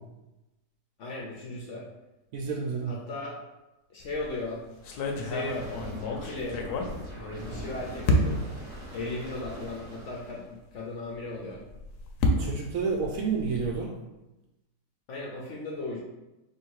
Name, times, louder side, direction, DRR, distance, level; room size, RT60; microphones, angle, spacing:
voice 1, 1.0-1.9 2.8-3.4 3.9-4.6 5.1-5.6 6.1-6.7 7.1-8.4 8.9-11.6 15.1-16.0, left 2 dB, 60° left, -3 dB, 0.8 m, -36 dB
voice 2, 2.3-2.9 12.4-13.9, right 5 dB, 70° right, 1 dB, 0.9 m, -30 dB
sound 1, 4.0-4.3 4.8-7.6 8.1-8.6 9.3-9.4 9.8-9.9 11.5-13.8, left 1 dB, 80° left, 1.1 m, -29 dB
sound 2, 4.7-10.5, right 1 dB, 40° right, 0.9 m, -42 dB
3.3 x 2.7 x 4.5 m, 0.99 s
omnidirectional pair, 1.7 m